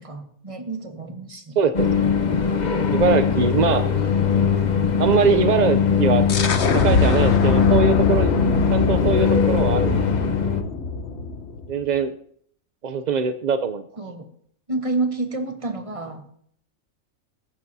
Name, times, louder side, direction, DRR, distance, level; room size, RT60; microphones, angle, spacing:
voice 1, 0.0-1.6 14.0-14.3 14.7-16.3, right 3 dB, 25° right, 5 dB, 1.4 m, -29 dB
voice 2, 1.6-1.9 2.9-3.8 5.0-6.3 6.7-8.3 8.7-10.0 11.7-12.1 12.8-13.8, right 5 dB, 55° right, 9 dB, 0.5 m, -21 dB
sound 1, 1.7-10.6, left 6 dB, 35° left, 0.9 m, -21 dB
sound 2, 6.3-11.8, left 3 dB, 55° left, 1.2 m, -23 dB
21.5 x 10.5 x 2.7 m, 0.64 s
omnidirectional pair, 1.4 m